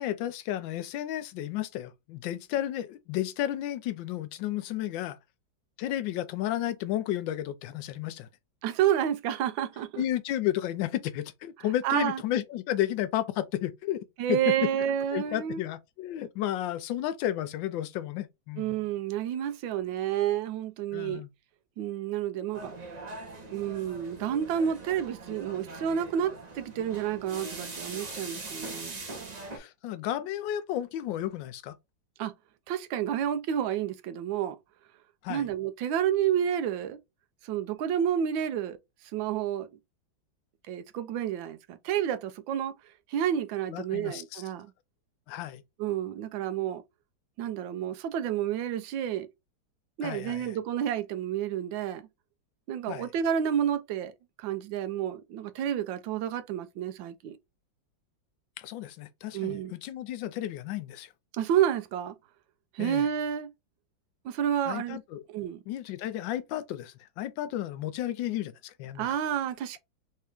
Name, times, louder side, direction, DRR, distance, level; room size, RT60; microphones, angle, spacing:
voice 1, 0.0-5.2 5.8-8.3 10.0-14.0 14.3-14.5 15.1-18.8 20.9-21.3 29.5-31.7 35.2-35.5 43.7-44.4 45.3-45.6 50.0-50.6 52.9-53.1 58.6-61.1 62.8-63.1 64.7-65.2 65.7-69.1, left 12 dB, 85° left, 1.3 m, -32 dB
voice 2, 8.6-10.0 11.8-12.2 14.2-15.6 18.6-21.2 21.8-22.7 23.5-29.0 32.2-32.3 32.7-34.6 35.3-37.0 37.4-38.8 39.1-39.7 40.7-42.8 43.1-44.7 45.8-46.8 47.4-49.3 50.0-52.0 52.7-54.1 54.4-57.4 59.3-59.7 61.3-62.1 62.7-63.5 64.2-65.0 65.3-65.6 69.0-69.8, right 9 dB, 85° right, 1.4 m, -30 dB
sound 1, 22.5-29.6, right 3 dB, 35° right, 0.7 m, -41 dB
3.7 x 2.8 x 3.4 m
omnidirectional pair, 2.0 m